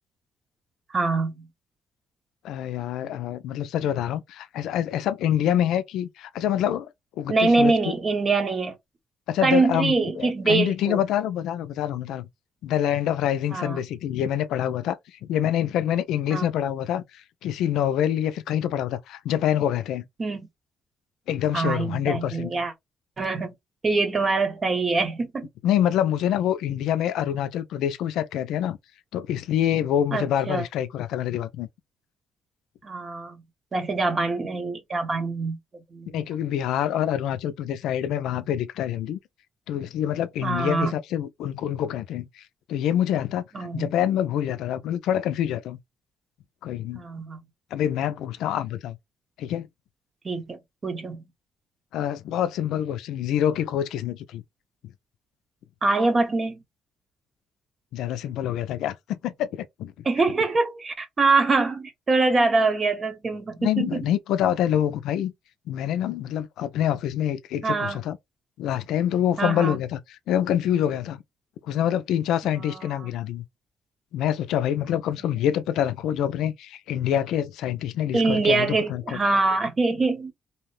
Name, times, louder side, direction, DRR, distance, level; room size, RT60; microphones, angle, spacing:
voice 1, 0.9-1.5 5.4-5.5 7.3-8.7 9.4-11.0 13.5-13.8 16.3-16.5 20.2-20.5 21.5-22.7 23.2-23.5 23.8-25.5 30.1-30.6 32.8-33.4 33.7-35.6 35.9-36.2 40.4-40.9 43.5-43.9 46.9-47.4 50.2-51.2 55.8-56.6 60.0-64.0 67.6-68.0 69.4-69.8 72.7-73.1 78.1-80.3, right 3 dB, 35° right, 0.8 m, -24 dB
voice 2, 2.4-6.9 7.2-7.7 9.3-12.3 12.6-15.0 15.3-20.0 21.3-22.5 25.6-28.8 29.1-31.7 36.1-39.2 39.7-42.4 42.7-45.8 46.6-47.0 47.7-49.0 49.4-49.7 51.9-54.4 57.9-59.9 63.6-65.3 65.7-68.2 68.6-70.0 70.3-71.2 71.6-73.4 74.1-79.2, left 10 dB, 85° left, 0.3 m, -26 dB
2.7 x 2.0 x 3.1 m
cardioid pair, 90°, 0 cm